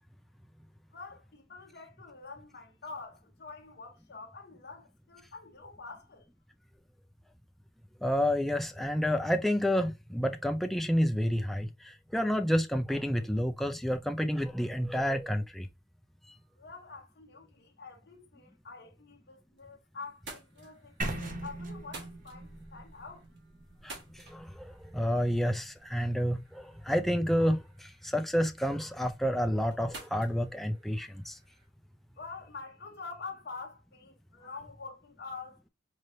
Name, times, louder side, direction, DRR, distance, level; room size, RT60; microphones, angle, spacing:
voice 1, 0.9-6.3 16.6-23.2 32.2-35.6, left 4 dB, 55° left, 0.8 m, -46 dB
voice 2, 8.0-15.7 23.8-31.4, equal, ahead, 0.4 m, -29 dB
sound 1, 19.2-19.7 20.0-31.7, right 3 dB, 60° right, 1.5 m, -53 dB
sound 2, 21.0-25.0, right 2 dB, 45° right, 0.9 m, -40 dB
4.2 x 3.2 x 2.6 m
head